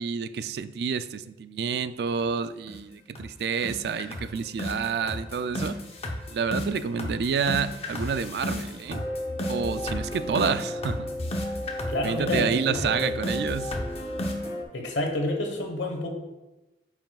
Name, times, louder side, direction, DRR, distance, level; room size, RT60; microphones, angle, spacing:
voice 1, 0.0-5.8 6.3-9.0 9.5-11.1 12.0-13.7, right 6 dB, 60° right, 13 dB, 0.3 m, -29 dB
sound 1, 2.2-2.3 2.7-2.8 3.2-3.3 3.6-14.6, left 1 dB, 35° left, 0.8 m, -32 dB
voice 2, 11.9-13.1 14.7-16.1, left 1 dB, 90° left, 3 dB, 1.2 m, -29 dB
8.7 x 5.9 x 2.4 m, 1.1 s
head